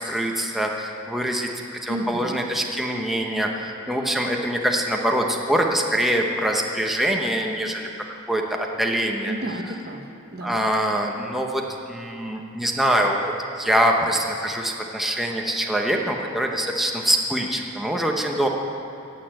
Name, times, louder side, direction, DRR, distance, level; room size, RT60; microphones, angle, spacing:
voice 1, 0.0-1.5 1.8-7.9 8.3-9.3 10.4-18.5, equal, ahead, 0 dB, 0.9 m, -24 dB
voice 2, 1.9-2.4 9.2-10.6, right 1 dB, 50° right, 4 dB, 1.1 m, -32 dB
18.5 x 6.9 x 7.7 m, 2.7 s
head